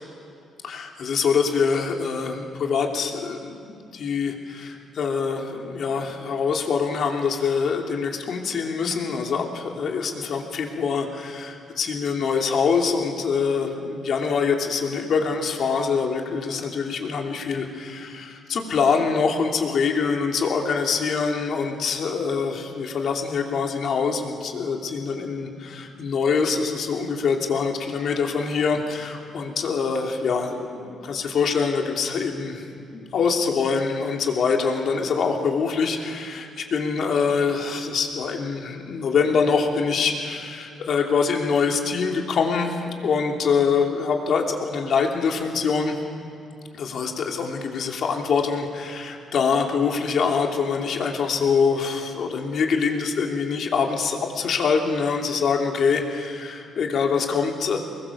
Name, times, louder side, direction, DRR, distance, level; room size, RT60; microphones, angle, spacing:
voice 1, 0.6-32.6 32.9-45.9 46.8-57.8, left 5 dB, 65° left, 2 dB, 2.9 m, -24 dB
24.5 x 21.5 x 7.1 m, 2.4 s
cardioid pair, 90°, 0 cm